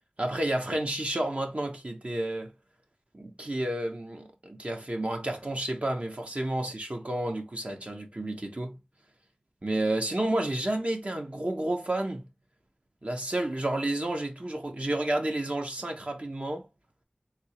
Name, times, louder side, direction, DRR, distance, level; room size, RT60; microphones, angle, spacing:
voice 1, 0.2-2.5 3.1-8.8 9.6-12.2 13.0-16.7, right 1 dB, 50° right, 0.9 m, -31 dB
3.5 x 2.8 x 3.0 m
wide cardioid pair, 50°, 3 cm